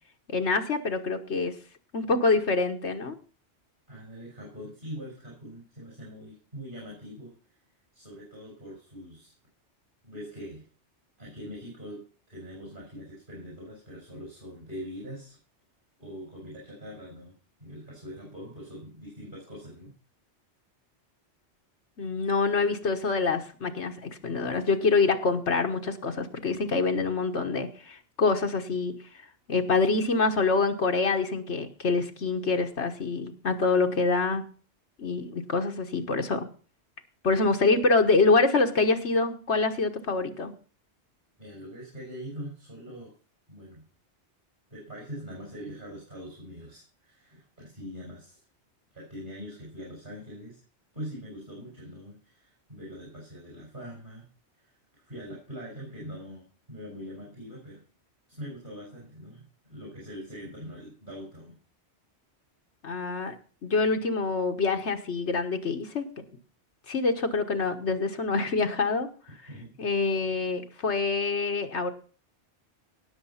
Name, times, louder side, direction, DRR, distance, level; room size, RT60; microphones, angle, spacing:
voice 1, 0.3-1.5 1.9-3.2 22.0-28.9 29.5-34.5 35.0-36.5 37.2-40.5 62.8-63.3 63.6-66.2 66.9-69.1 69.8-71.9, left 3 dB, 70° left, 5 dB, 1.6 m, -26 dB
voice 2, 3.9-7.3 7.9-9.3 10.0-10.6 11.2-12.0 12.3-15.4 16.0-17.4 17.6-19.9 41.4-43.1 43.5-43.8 44.7-48.4 48.9-50.6 50.9-54.2 54.5-54.8 55.0-57.8 58.4-61.6 69.3-69.8, equal, 45° right, -2 dB, 5.7 m, -42 dB
17.5 x 7.0 x 5.7 m, 0.40 s
omnidirectional pair, 1.2 m